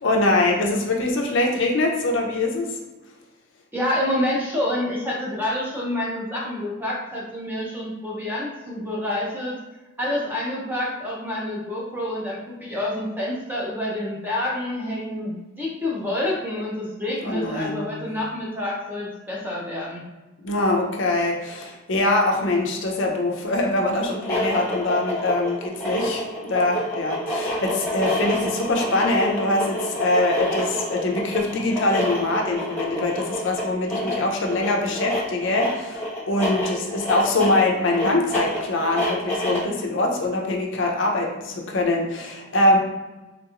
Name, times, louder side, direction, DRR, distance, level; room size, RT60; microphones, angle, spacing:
voice 1, 0.0-2.8 17.2-17.9 20.4-42.8, left 2 dB, 60° left, 1 dB, 0.5 m, -23 dB
voice 2, 3.7-9.6 10.0-20.1, left 1 dB, 10° right, -4 dB, 0.6 m, -28 dB
sound 1, 24.1-39.8, left 1 dB, 10° left, 1.1 m, -28 dB
3.5 x 2.9 x 2.4 m, 1.1 s
head